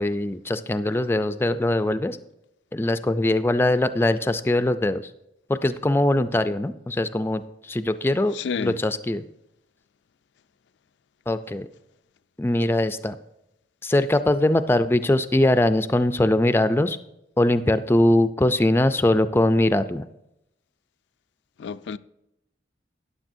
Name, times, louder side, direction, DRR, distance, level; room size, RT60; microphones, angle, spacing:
voice 1, 0.0-2.2 2.7-5.0 5.5-9.2 11.3-11.7 12.4-13.2 13.8-17.0 17.4-20.0, left 1 dB, 15° left, 0.4 m, -21 dB
voice 2, 8.3-8.8 21.6-22.0, left 6 dB, 85° left, 0.4 m, -30 dB
13.5 x 9.9 x 2.6 m
head